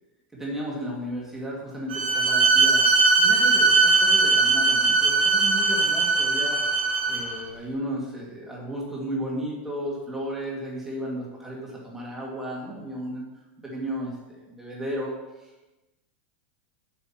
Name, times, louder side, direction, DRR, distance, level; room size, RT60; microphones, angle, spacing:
voice 1, 0.3-2.8 3.2-6.6 7.1-13.2 13.6-15.1 15.4-15.5, equal, 5° right, -4 dB, 2.4 m, -34 dB
Bowed string instrument, 1.9-7.4, right 3 dB, 80° right, 3.4 m, -20 dB
8.5 x 5.8 x 6.0 m, 1.1 s
supercardioid pair, 160°, 6 cm